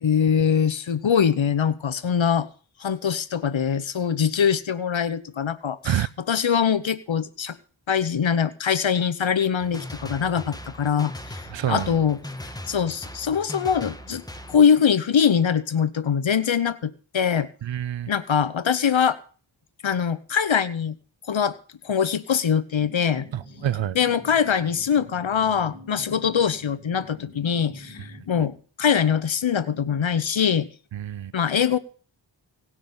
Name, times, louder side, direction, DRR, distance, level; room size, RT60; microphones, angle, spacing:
voice 1, 0.0-2.5 2.8-7.6 7.9-14.2 14.5-17.5 18.1-19.2 19.8-20.9 21.3-21.6 21.8-23.3 23.9-30.7 31.3-31.8, left 7 dB, 80° left, 1.0 m, -23 dB
sound 1, 9.6-14.6, left 1 dB, 10° left, 1.5 m, -39 dB
voice 2, 11.5-12.0 17.6-18.1 23.3-24.0 30.9-31.3, right 11 dB, 75° right, 0.6 m, -27 dB
sound 2, 22.8-28.2, equal, 25° right, 6.3 m, -46 dB
18.0 x 6.1 x 8.7 m
wide cardioid pair, 50°, 46 cm